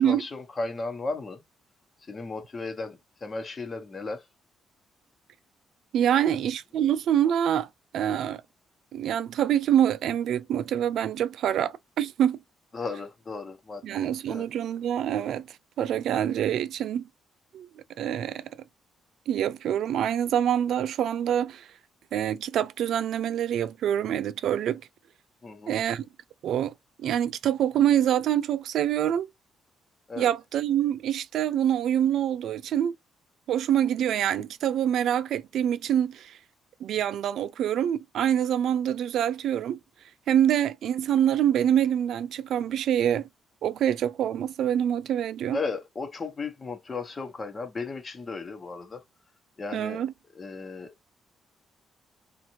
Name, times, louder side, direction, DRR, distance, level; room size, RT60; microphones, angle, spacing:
voice 1, 0.0-1.4 2.1-4.2 6.2-6.4 12.7-14.5 25.4-25.8 30.1-30.3 45.5-49.0 49.6-50.0 50.3-50.9, left 3 dB, 30° left, 1.0 m, -35 dB
voice 2, 5.9-7.7 7.9-8.4 8.9-12.4 13.8-17.1 17.5-17.7 18.0-18.5 19.3-21.7 22.1-24.8 25.7-26.0 26.4-26.7 27.0-29.3 30.2-32.9 33.5-36.4 36.8-39.8 40.3-43.3 43.6-45.6 49.7-50.1, right 10 dB, 75° right, 0.3 m, -25 dB
2.6 x 2.5 x 2.9 m
cardioid pair, 90°, 0 cm